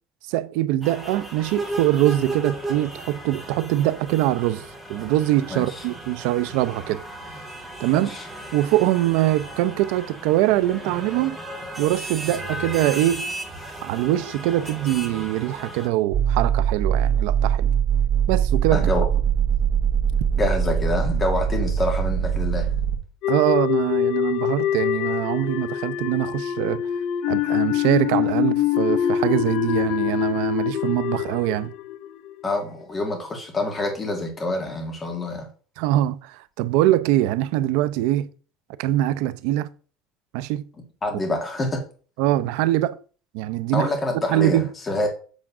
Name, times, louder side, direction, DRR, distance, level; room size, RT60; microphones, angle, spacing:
voice 1, 0.3-7.0 7.8-8.2 8.5-11.4 11.8-13.2 13.8-17.7 18.3-18.9 23.3-26.9 27.3-31.7 35.8-38.3 38.8-39.7 40.3-40.6 42.2-43.0 43.3-43.9 44.3-44.7, right 14 dB, 65° right, 0.6 m, -23 dB
sound 1, 0.8-15.9, right 1 dB, ahead, 1.8 m, -35 dB
voice 2, 7.9-8.2 18.7-19.1 20.4-22.7 32.4-35.5 41.0-41.8 43.7-44.6 44.9-45.1, left 2 dB, 15° left, 2.0 m, -26 dB
sound 2, 16.1-23.0, right 8 dB, 35° right, 1.8 m, -22 dB
sound 3, 23.2-32.4, left 11 dB, 50° left, 0.4 m, -24 dB
8.3 x 3.6 x 6.0 m
cardioid pair, 175°, 0 cm